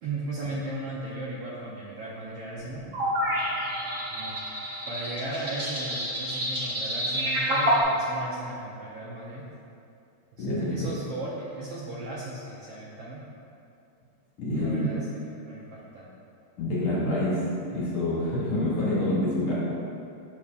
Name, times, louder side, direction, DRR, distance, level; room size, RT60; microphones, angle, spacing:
voice 1, 0.0-2.8 4.1-4.4 4.9-9.4 10.3-13.2 14.5-16.1, right 2 dB, 70° right, -6 dB, 1.5 m, -36 dB
sound 1, 2.5-7.8, equal, 35° right, 1.4 m, -29 dB
voice 2, 10.4-10.7 14.4-14.9 16.6-17.4 17.7-19.5, left 1 dB, 55° left, -8 dB, 2.1 m, -27 dB
7.3 x 7.1 x 2.5 m, 2.5 s
omnidirectional pair, 3.3 m